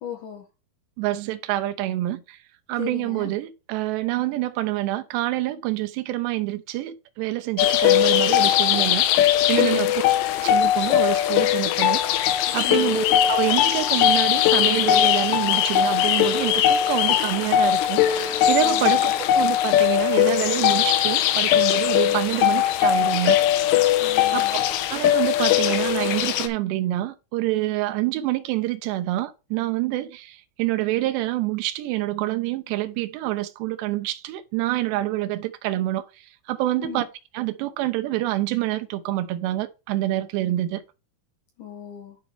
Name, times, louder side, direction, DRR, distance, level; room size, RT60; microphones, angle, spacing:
voice 1, 0.0-0.5 2.8-3.3 9.6-9.9 12.6-13.0 18.6-18.9 24.0-24.6 36.8-37.1 41.6-42.2, left 9 dB, 65° left, 2.1 m, -37 dB
voice 2, 1.0-2.4 2.7-9.9 10.4-12.0 12.5-23.4 24.3-24.5 24.9-36.1 36.5-37.1 37.3-40.8, right 16 dB, 85° right, 2.5 m, -27 dB
sound 1, 7.6-26.5, left 11 dB, 85° left, 3.3 m, -20 dB
11.5 x 4.3 x 3.5 m
omnidirectional pair, 5.7 m